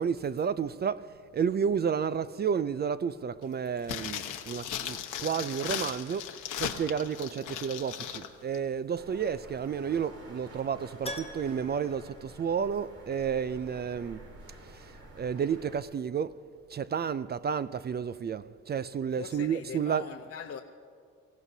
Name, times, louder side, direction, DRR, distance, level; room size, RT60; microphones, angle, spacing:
voice 1, 0.0-14.2 14.6-20.1, right 7 dB, 35° right, 0.4 m, -31 dB
sound 1, 3.8-8.3 8.5-8.6, left 9 dB, 80° left, 1.1 m, -37 dB
sound 2, 9.0-15.8, right 1 dB, 55° right, 2.4 m, -49 dB
Keyboard (musical), 11.0-13.1 13.3-13.4 16.2-16.3 16.5-16.6, left 1 dB, 20° left, 0.9 m, -43 dB
voice 2, 19.2-20.6, left 7 dB, 50° left, 0.9 m, -41 dB
24.0 x 16.0 x 2.7 m
cardioid pair, 90°, 30 cm